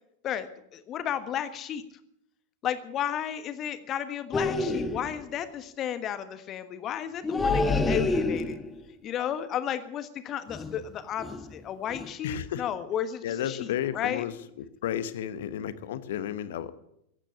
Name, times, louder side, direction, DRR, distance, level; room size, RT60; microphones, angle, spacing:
voice 1, 0.2-1.8 2.6-8.6 9.0-14.2, left 9 dB, 30° left, 11 dB, 1.4 m, -33 dB
sound 1, 4.3-5.2 7.2-8.8 10.5-10.9 11.2-11.5 11.9-12.1, left 3 dB, 15° left, 1.2 m, -28 dB
voice 2, 12.2-12.6 13.2-14.3 14.8-16.7, left 10 dB, 55° left, 14 dB, 1.1 m, -32 dB
15.5 x 9.0 x 9.8 m, 0.78 s
figure-of-eight pair, 90°, 0 cm